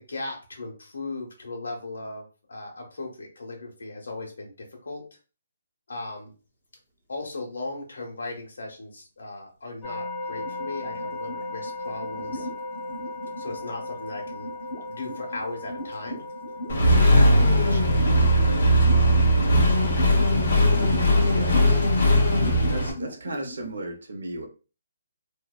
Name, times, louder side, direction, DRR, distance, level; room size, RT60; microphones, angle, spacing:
voice 1, 0.0-4.5 4.8-5.0 5.9-6.3 7.1-12.5 13.3-14.5 14.9-16.2 16.8-19.2, left 2 dB, 80° left, 1 dB, 0.9 m, -37 dB
sound 1, 9.8-21.3, left 2 dB, ahead, 0.4 m, -38 dB
sound 2, 10.3-23.7, equal, 30° left, 1.2 m, -38 dB
Accelerating revving vroom, 16.7-22.9, equal, 55° left, 0.7 m, -19 dB
voice 2, 21.2-21.8 22.7-24.5, right 1 dB, 90° right, 2 dB, 0.7 m, -35 dB
2.6 x 2.1 x 2.3 m, 0.34 s
hypercardioid pair, 180°, 0 cm